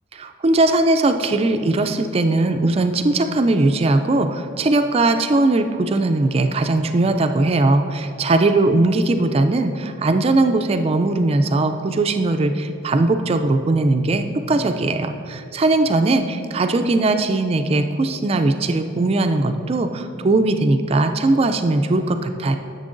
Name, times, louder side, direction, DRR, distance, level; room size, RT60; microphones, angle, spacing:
voice 1, 0.2-22.6, right 2 dB, 30° right, 7 dB, 0.3 m, -19 dB
11.0 x 6.7 x 2.5 m, 2.5 s
head